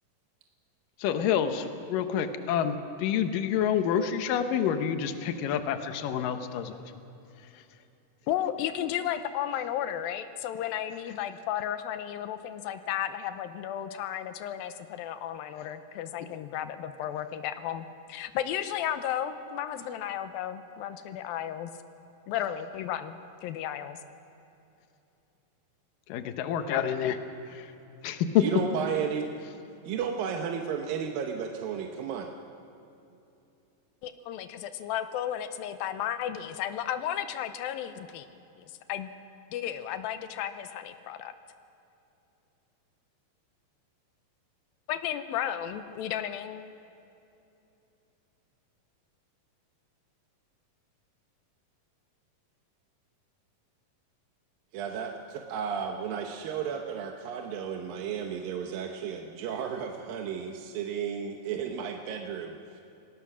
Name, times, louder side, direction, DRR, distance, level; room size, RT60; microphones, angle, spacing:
voice 1, 1.0-6.7 26.1-27.2 27.5-27.7 28.0-28.5, left 9 dB, 75° left, 8 dB, 2.7 m, -28 dB
voice 2, 8.3-21.7 22.3-24.0 34.0-38.3 38.6-39.1 39.5-41.3 44.9-46.7, left 10 dB, 90° left, 10 dB, 2.6 m, -34 dB
voice 3, 28.4-29.3 29.9-32.3 54.7-62.8, right 7 dB, 80° right, 2 dB, 2.8 m, -33 dB
29.5 x 19.0 x 6.2 m, 2.8 s
omnidirectional pair, 4.1 m